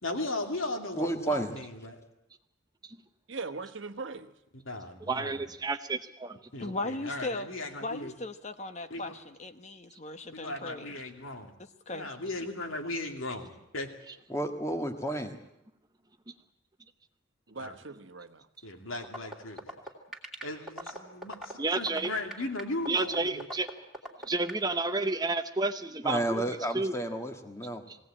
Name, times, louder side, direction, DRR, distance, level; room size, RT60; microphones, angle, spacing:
voice 1, 0.0-2.0 4.7-5.5 6.5-8.1 8.9-9.1 10.3-11.5 11.9-13.9 17.6-17.8 18.6-19.7 20.4-23.5, left 2 dB, 75° left, 3 dB, 2.7 m, -37 dB
voice 2, 0.9-1.5 14.3-15.3 26.0-27.8, right 1 dB, 15° left, 6 dB, 1.6 m, -31 dB
voice 3, 3.3-4.4 17.5-18.5, right 4 dB, 65° right, 9 dB, 1.2 m, -40 dB
voice 4, 5.0-6.4 21.6-22.1 22.9-23.7 24.2-26.4 26.7-26.9 27.9-28.0, right 3 dB, 20° right, 9 dB, 0.7 m, -30 dB
voice 5, 6.6-7.5 7.8-10.9 11.6-12.1, left 2 dB, 35° left, 9 dB, 1.0 m, -38 dB
sound 1, 19.0-24.6, right 1 dB, ahead, 2.7 m, -39 dB
21.0 x 17.0 x 8.8 m, 0.84 s
head